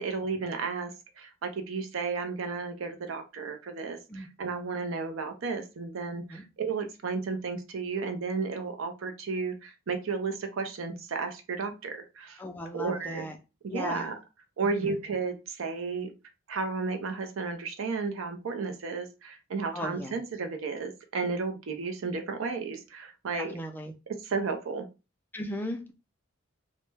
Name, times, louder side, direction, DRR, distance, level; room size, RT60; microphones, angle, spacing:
voice 1, 0.0-12.4 12.7-13.3 13.6-14.2 14.6-16.1 16.5-23.6 24.1-24.9, right 4 dB, 75° right, 6 dB, 0.5 m, -33 dB
voice 2, 12.4-13.4 13.7-14.1 14.8-14.9 19.7-20.1 23.4-23.9 25.3-25.9, left 1 dB, 10° left, 3 dB, 0.3 m, -36 dB
2.2 x 2.1 x 3.2 m, 0.29 s
head